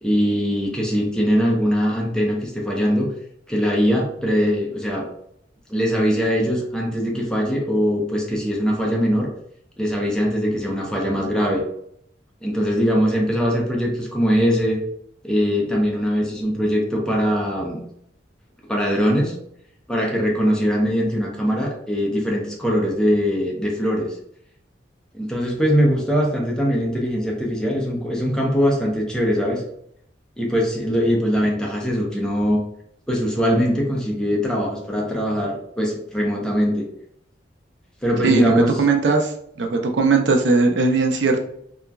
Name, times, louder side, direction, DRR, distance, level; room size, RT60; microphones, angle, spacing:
voice 1, 0.0-3.1 3.5-5.0 5.7-9.3 9.8-11.6 12.4-14.8 15.2-17.8 18.7-19.3 19.9-24.1 25.1-29.6 30.4-32.6 33.1-36.8 38.0-38.7, equal, 5° left, -2 dB, 0.6 m, -21 dB
voice 2, 38.2-39.3 39.6-41.4, right 3 dB, 75° right, 4 dB, 0.4 m, -18 dB
2.9 x 2.4 x 2.2 m, 0.71 s
head